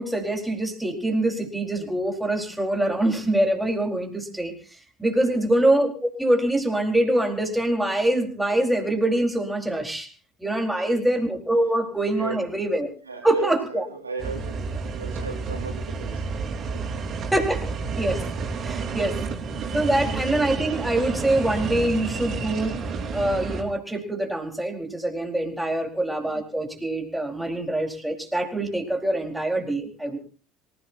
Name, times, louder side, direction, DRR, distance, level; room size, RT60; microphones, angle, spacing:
voice 1, 0.0-4.5 5.0-10.1 10.4-12.9 13.2-13.8 17.3-17.6 18.0-18.2 18.6-19.2 19.7-22.8 23.1-30.2, right 1 dB, 5° right, 1 dB, 4.3 m, -24 dB
voice 2, 10.6-11.0 12.1-12.4 13.0-16.4 16.7-16.9 25.6-25.8, right 4 dB, 80° right, 3 dB, 3.1 m, -36 dB
sound 1, 14.2-23.6, right 4 dB, 40° right, 4.6 m, -30 dB
26.0 x 16.0 x 2.8 m, 0.39 s
figure-of-eight pair, 65°, 0 cm